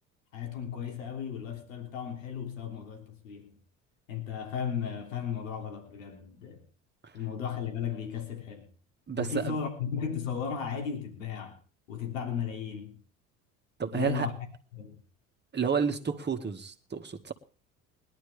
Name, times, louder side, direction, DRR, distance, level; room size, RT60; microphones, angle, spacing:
voice 1, 0.3-3.6 4.1-6.6 7.1-8.7 9.2-11.6 11.9-13.0 13.9-14.3 14.7-15.0, left 7 dB, 85° left, 3.3 m, -35 dB
voice 2, 9.1-9.6 13.8-14.3 15.5-17.3, right 6 dB, 25° right, 2.0 m, -30 dB
21.0 x 11.5 x 3.5 m
hypercardioid pair, 70°, 39 cm